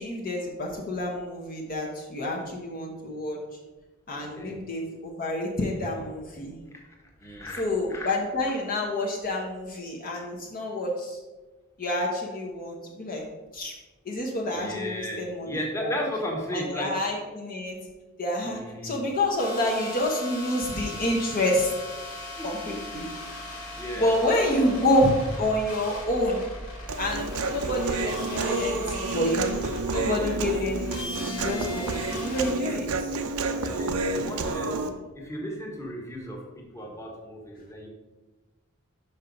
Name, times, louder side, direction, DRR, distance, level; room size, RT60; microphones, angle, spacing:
voice 1, 0.0-3.4 4.1-6.5 7.6-11.2 11.8-13.2 13.5-13.7 14.0-15.9 16.5-17.8 18.2-21.7 22.4-23.1 24.0-26.4 27.0-29.6 29.9-32.9, left 1 dB, 40° left, -1 dB, 1.0 m, -28 dB
voice 2, 4.2-4.5 6.7-6.9 7.2-7.6 7.9-8.2 9.3-9.4 14.5-15.2 15.4-16.9 18.4-19.1 22.4-23.0 23.7-24.7 30.1-30.4 33.6-34.9 35.1-37.9, equal, 15° left, -1 dB, 1.2 m, -35 dB
sound 1, 19.4-32.5, left 1 dB, 65° left, 1.9 m, -38 dB
Human voice, 26.9-34.9, right 3 dB, 85° right, 0.7 m, -30 dB
5.7 x 5.6 x 5.2 m, 1.2 s
head